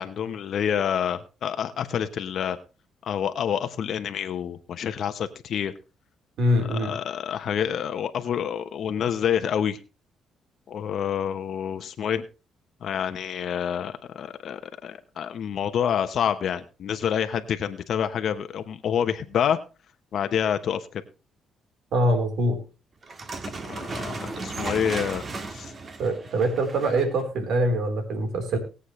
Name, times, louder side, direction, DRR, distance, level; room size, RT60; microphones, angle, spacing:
voice 1, 0.0-2.6 3.0-5.7 6.7-9.8 10.7-12.2 12.8-19.6 20.1-21.0 23.6-25.2 25.5-25.7, left 8 dB, 65° left, 9 dB, 1.0 m, -28 dB
voice 2, 6.4-6.9 21.9-22.6 26.0-28.6, right 1 dB, 75° right, 5 dB, 3.9 m, -24 dB
sound 1, 23.0-27.2, right 3 dB, 40° right, 1.5 m, -35 dB
20.0 x 8.1 x 3.2 m, 0.31 s
cardioid pair, 90°, 0 cm